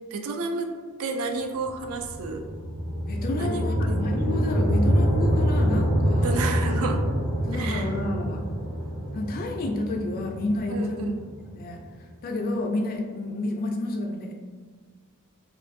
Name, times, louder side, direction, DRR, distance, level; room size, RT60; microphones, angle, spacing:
voice 1, 0.1-0.7 1.0-2.5 3.4-4.0 6.2-7.0 7.5-7.9 10.7-11.2, right 3 dB, 70° right, 5 dB, 0.3 m, -31 dB
sound 1, 1.6-11.8, equal, 35° right, 0.7 m, -26 dB
voice 2, 3.1-6.4 7.4-8.4 9.1-11.1 11.4-11.8 12.2-14.3, left 1 dB, 40° left, 2 dB, 0.3 m, -30 dB
2.5 x 2.4 x 2.5 m, 1.5 s
head